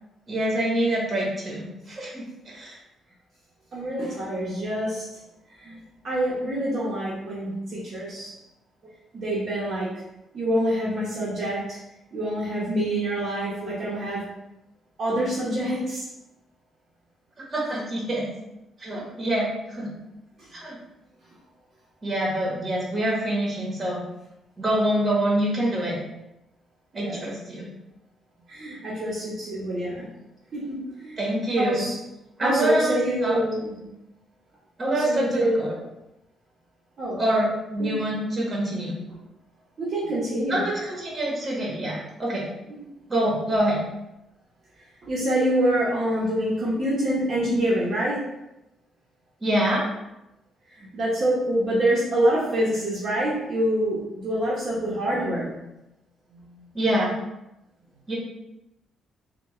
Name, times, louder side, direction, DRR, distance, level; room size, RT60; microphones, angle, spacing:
voice 1, 0.3-2.7 17.5-18.2 18.8-19.9 20.5-20.8 22.0-24.0 24.6-26.0 26.9-27.7 31.2-31.9 32.4-33.4 34.8-35.7 37.2-38.9 40.5-42.5 43.1-43.8 49.4-49.8 56.7-57.1 58.1-58.2, right 1 dB, 30° right, -4 dB, 1.3 m, -25 dB
voice 2, 3.7-5.1 5.6-8.3 9.1-9.9 10.3-11.8 12.1-14.3 15.0-16.1 20.4-20.5 26.9-27.2 28.5-30.1 30.5-31.2 31.6-32.0 32.4-33.9 34.9-35.7 37.0-37.2 37.8-38.2 39.8-40.6 42.7-42.9 45.0-48.3 50.7-55.6 56.5-56.7, right 1 dB, 50° right, -7 dB, 0.9 m, -26 dB
3.4 x 2.3 x 3.1 m, 0.91 s
cardioid pair, 90°, 0 cm